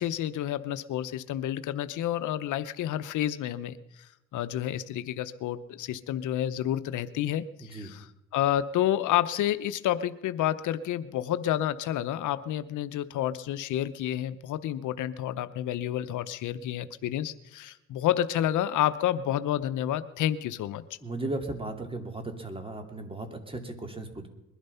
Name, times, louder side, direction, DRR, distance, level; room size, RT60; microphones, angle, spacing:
voice 1, 0.0-3.7 4.3-8.1 8.3-20.8, left 12 dB, 80° left, 12 dB, 0.8 m, -29 dB
voice 2, 7.6-7.9 21.0-24.3, right 2 dB, 20° right, 5 dB, 2.6 m, -36 dB
21.0 x 11.5 x 5.6 m, 0.91 s
cardioid pair, 90°, 30 cm